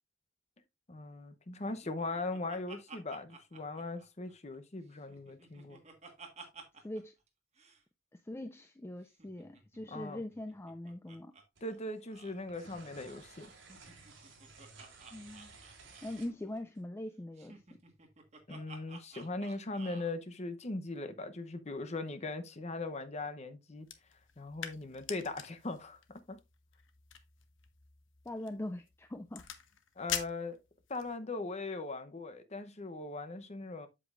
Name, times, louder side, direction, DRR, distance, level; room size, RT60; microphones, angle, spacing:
voice 1, 0.9-5.8 9.9-10.2 11.6-13.5 18.5-23.9 24.4-26.4 30.0-30.6 30.9-33.9, left 2 dB, 35° left, 0.8 m, -40 dB
Laughter, 1.6-4.6 4.9-7.0 7.3-7.4 7.6-7.8 9.1-11.4 11.7-11.8 12.1-12.4 13.5-16.3 17.4-20.1, right 4 dB, 35° right, 1.5 m, -54 dB
voice 2, 6.8-7.1 8.3-11.3 15.1-15.5 16.0-17.6 28.3-29.4, left 1 dB, 10° left, 0.3 m, -42 dB
sound 1, 11.6-12.0 12.3-16.8, right 4 dB, 60° right, 3.1 m, -55 dB
sound 2, 23.8-31.2, left 9 dB, 65° left, 1.1 m, -45 dB
8.0 x 7.8 x 2.5 m
head